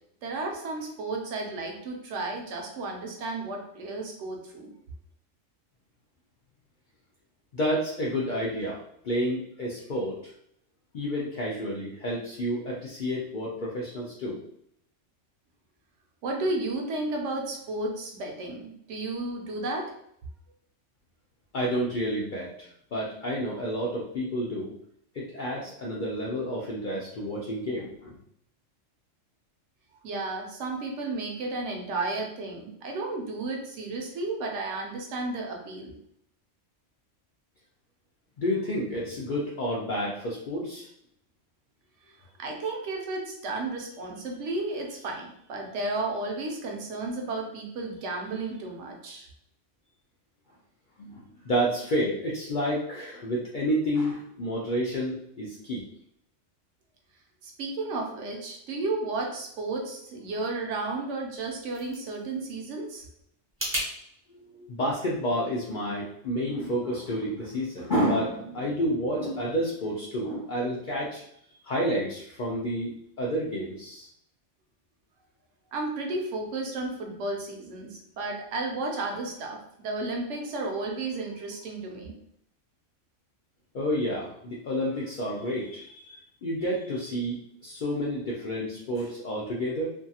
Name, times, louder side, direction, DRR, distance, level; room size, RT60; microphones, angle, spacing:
voice 1, 0.2-4.7 16.2-20.0 30.0-35.9 42.4-49.3 57.4-63.1 75.7-82.1, right 2 dB, 70° right, 2 dB, 0.9 m, -33 dB
voice 2, 7.5-10.3 10.9-14.4 21.5-24.7 25.1-28.2 38.4-40.9 51.0-55.8 64.3-71.2 71.6-74.1 83.7-89.9, equal, 65° left, -4 dB, 0.5 m, -30 dB
sound 1, 61.3-63.9, equal, 15° right, 0.5 m, -36 dB
2.6 x 2.3 x 2.7 m, 0.71 s
omnidirectional pair, 1.3 m